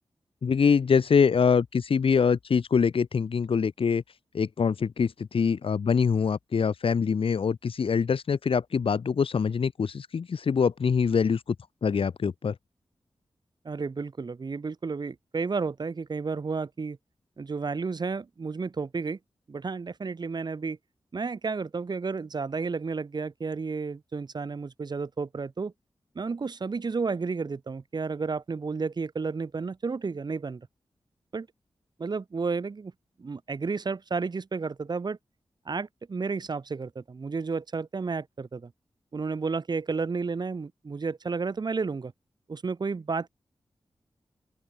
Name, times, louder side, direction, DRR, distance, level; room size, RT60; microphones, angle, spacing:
voice 1, 0.4-4.0 4.3-11.4 11.8-12.6, left 6 dB, 70° left, 3.8 m, -24 dB
voice 2, 13.6-17.0 17.4-19.2 19.5-20.8 21.1-25.7 26.1-30.7 31.3-31.5 32.0-32.9 33.2-35.2 35.6-38.7 39.1-42.1 42.5-43.3, right 4 dB, 45° right, 4.8 m, -32 dB
open air
wide cardioid pair, 145°, 10 cm